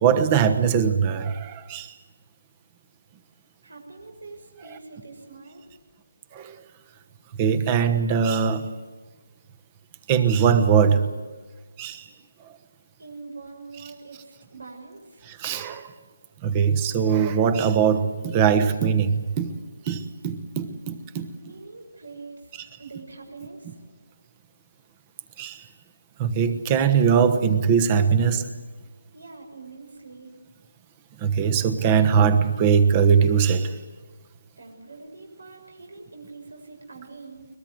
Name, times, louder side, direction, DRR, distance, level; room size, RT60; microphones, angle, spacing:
voice 1, 0.0-1.9 6.3-6.6 7.4-8.7 10.1-11.1 11.8-12.1 12.4-12.5 15.3-15.9 16.4-21.3 25.4-25.7 26.2-28.5 31.2-33.8, right 7 dB, 20° right, 12 dB, 1.2 m, -21 dB
voice 2, 3.6-5.7 13.0-15.3 21.4-23.8 29.1-30.3 34.6-37.5, right 3 dB, 80° right, 3 dB, 6.6 m, -44 dB
22.5 x 21.0 x 7.9 m, 1.3 s
hypercardioid pair, 165°, 0 cm